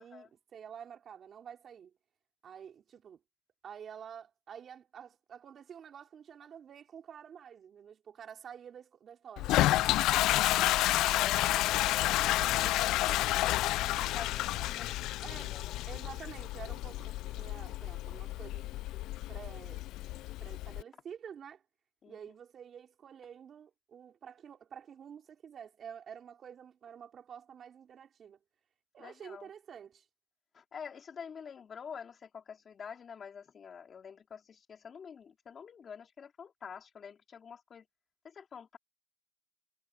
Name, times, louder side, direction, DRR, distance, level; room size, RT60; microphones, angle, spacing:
voice 1, 0.0-1.9 2.4-3.2 3.6-9.6 15.2-15.6 15.9-18.6 19.3-19.9 20.4-21.6 22.1-28.4 28.9-30.0, right 8 dB, 40° right, 5.1 m, -49 dB
Toilet flush, 9.4-20.8, left 16 dB, 80° left, 0.3 m, -30 dB
voice 2, 10.5-13.2 13.8-15.8 22.0-22.2 29.0-29.5 30.5-37.9 38.2-38.8, left 7 dB, 35° left, 3.9 m, -47 dB
cardioid pair, 145°, 0 cm